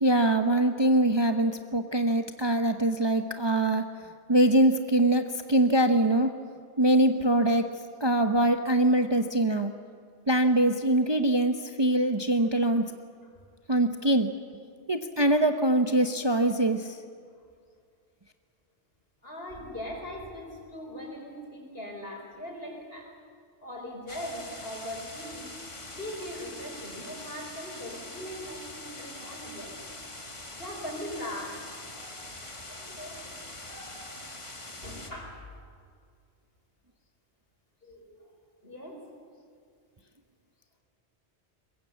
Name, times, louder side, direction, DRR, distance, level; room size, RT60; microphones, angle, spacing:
voice 1, 0.0-3.9 4.3-6.3 6.8-7.7 8.0-9.7 10.3-12.9 13.7-14.3 14.9-17.0, right 1 dB, 25° right, 6 dB, 0.9 m, -23 dB
voice 2, 19.2-23.1 23.6-25.5 25.9-29.8 30.6-31.6 31.9-32.2 32.7-34.1 34.8-35.4 37.8-38.3 38.6-39.0, equal, 55° left, 0 dB, 5.5 m, -40 dB
sound 1, 24.1-35.1, left 2 dB, 25° left, 1.9 m, -43 dB
23.0 x 20.5 x 8.3 m, 2.2 s
omnidirectional pair, 1.2 m